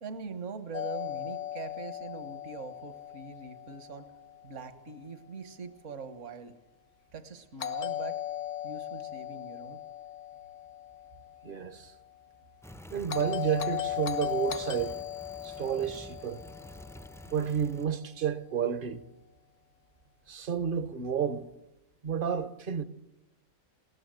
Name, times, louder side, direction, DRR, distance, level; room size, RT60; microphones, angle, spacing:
voice 1, 0.0-4.1 4.4-6.5 7.1-8.2 8.6-9.8, right 5 dB, 65° right, 1.7 m, -43 dB
Doorbell, 0.7-4.7 7.6-11.8 13.1-17.5, left 11 dB, 60° left, 1.4 m, -38 dB
voice 2, 11.4-11.9 12.9-15.0 15.4-16.4 17.3-19.0 20.3-21.5 22.0-22.8, right 8 dB, 45° right, 1.0 m, -31 dB
sound 1, 12.6-17.9, equal, 5° left, 0.6 m, -49 dB
21.0 x 18.0 x 7.8 m
omnidirectional pair, 1.4 m